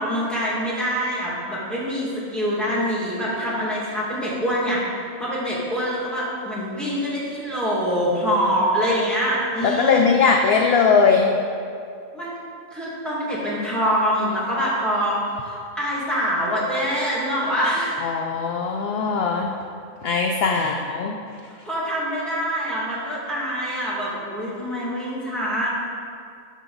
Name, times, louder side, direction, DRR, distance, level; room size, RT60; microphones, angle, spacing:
voice 1, 0.0-4.8 5.2-10.1 12.1-12.3 12.7-18.0 20.6-20.8 21.7-25.7, equal, ahead, -7 dB, 1.9 m, -25 dB
voice 2, 9.6-11.4 18.0-19.6 20.0-21.1, left 5 dB, 65° left, 2 dB, 0.6 m, -20 dB
12.0 x 4.6 x 3.9 m, 2.4 s
omnidirectional pair, 1.4 m